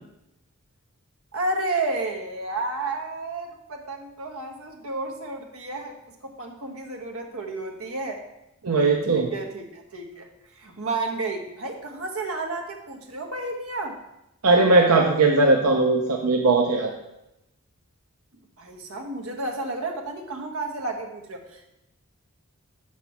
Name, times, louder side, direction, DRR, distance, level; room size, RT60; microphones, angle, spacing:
voice 1, 1.3-5.9 6.2-8.2 9.1-10.3 10.5-14.0 18.6-21.7, right 2 dB, 70° right, 2 dB, 1.3 m, -31 dB
voice 2, 8.6-9.3 14.4-16.9, right 3 dB, 85° right, 1 dB, 0.8 m, -19 dB
6.0 x 6.0 x 5.7 m, 0.89 s
head